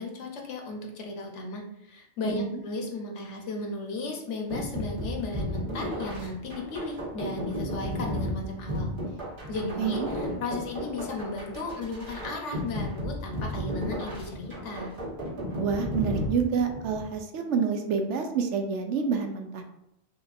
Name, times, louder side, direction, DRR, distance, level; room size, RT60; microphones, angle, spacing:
voice 1, 0.0-8.9 9.5-14.9, left 2 dB, 70° left, 1 dB, 1.1 m, -35 dB
voice 2, 2.2-2.6 9.8-10.1 15.6-19.6, right 6 dB, 70° right, 5 dB, 0.9 m, -28 dB
sound 1, 4.5-17.1, equal, 45° right, 1.4 m, -34 dB
5.8 x 2.6 x 2.5 m, 0.81 s
omnidirectional pair, 1.3 m